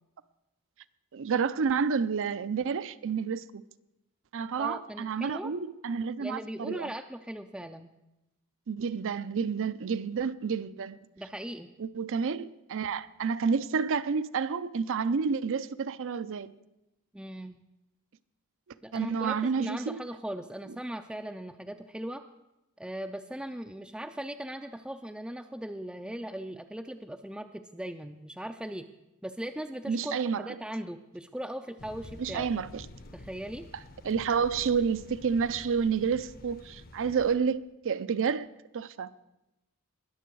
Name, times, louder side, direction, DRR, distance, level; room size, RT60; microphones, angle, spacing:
voice 1, 1.1-3.6 4.3-6.9 8.7-11.0 11.8-16.5 18.9-20.0 29.9-30.5 32.2-32.9 34.0-38.5 38.7-39.1, right 6 dB, 60° right, 0.5 m, -29 dB
voice 2, 4.6-5.5 6.2-7.9 11.2-11.7 17.1-17.6 18.8-22.2 22.8-28.8 29.2-32.5 33.1-33.7, right 1 dB, 5° right, 0.4 m, -39 dB
sound 1, 31.8-37.4, left 1 dB, 45° left, 0.8 m, -49 dB
20.5 x 7.0 x 4.7 m
head